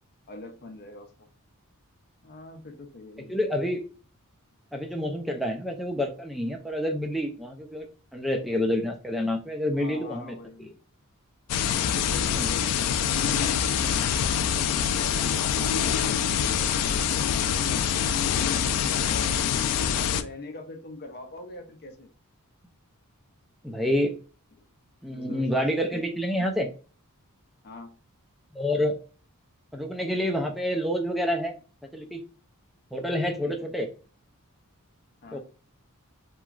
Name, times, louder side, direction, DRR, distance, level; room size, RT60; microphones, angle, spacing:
voice 1, 0.3-1.3 2.2-3.4 9.7-10.8 11.9-13.7 14.9-17.8 18.9-19.6 19.9-22.1 25.1-25.6 27.6-27.9 33.4-33.7 35.2-35.4, left 2 dB, 45° left, 6 dB, 0.6 m, -44 dB
voice 2, 3.3-3.8 4.7-7.9 8.1-10.4 12.4-12.5 23.6-24.1 25.0-26.7 28.5-29.0 29.7-31.5 31.9-32.2 32.9-33.9 35.3-35.4, left 1 dB, ahead, 2 dB, 0.4 m, -28 dB
sound 1, 11.5-20.2, left 8 dB, 85° left, 0.3 m, -25 dB
2.9 x 2.3 x 2.3 m, 0.37 s
head